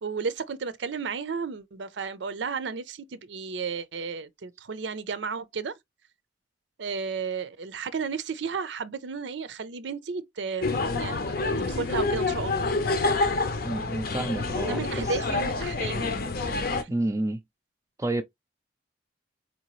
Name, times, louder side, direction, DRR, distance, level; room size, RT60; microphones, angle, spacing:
voice 1, 0.0-5.7 6.8-12.8 14.7-16.2 16.8-16.9, right 5 dB, 75° right, 0.5 m, -33 dB
sound 1, 10.6-16.8, left 3 dB, 50° left, 0.6 m, -27 dB
voice 2, 13.6-14.8 15.1-15.2 16.9-17.4 18.0-18.2, right 1 dB, 15° right, 0.5 m, -29 dB
4.5 x 2.8 x 3.0 m
head